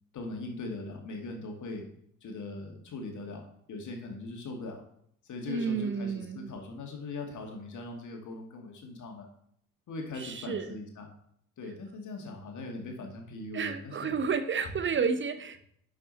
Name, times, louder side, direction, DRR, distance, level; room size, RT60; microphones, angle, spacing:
voice 1, 0.1-1.8 2.2-4.8 5.3-9.3 9.9-11.1 11.6-14.1 14.6-14.7, left 2 dB, 40° left, 2 dB, 2.4 m, -40 dB
voice 2, 5.4-6.5 10.2-10.8 13.5-15.6, right 5 dB, 25° right, 12 dB, 0.8 m, -31 dB
11.0 x 5.8 x 4.2 m, 0.69 s
figure-of-eight pair, 55°, 45 cm